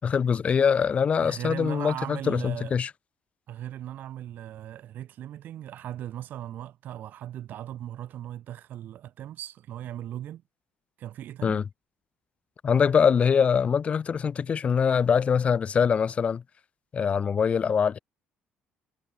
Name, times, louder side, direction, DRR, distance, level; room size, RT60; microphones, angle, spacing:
voice 1, 0.0-2.9 11.4-11.6 12.6-16.4 16.9-18.0, left 6 dB, 40° left, 4.5 m, -23 dB
voice 2, 1.2-2.7 3.5-10.4 11.0-11.6, right 12 dB, 65° right, 6.3 m, -38 dB
cardioid pair, 120°, 3 cm